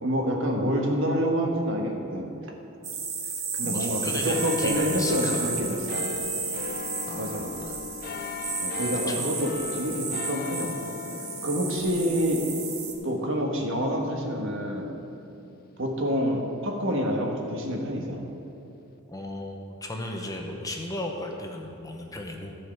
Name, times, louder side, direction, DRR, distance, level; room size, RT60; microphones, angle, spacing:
voice 1, 0.0-2.3 3.5-6.1 7.1-7.5 8.6-10.9 11.4-12.4 13.0-14.9 15.8-18.2, equal, 65° right, 1 dB, 1.5 m, -27 dB
sound 1, 2.8-12.9, right 5 dB, 85° right, 1.4 m, -33 dB
voice 2, 3.6-5.5 7.1-7.8 9.1-9.3 19.1-22.6, left 1 dB, 15° left, 1 dB, 0.9 m, -35 dB
sound 2, 4.3-17.2 17.8-17.9, left 6 dB, 45° left, 0.3 m, -39 dB
14.0 x 4.8 x 7.6 m, 2.8 s
head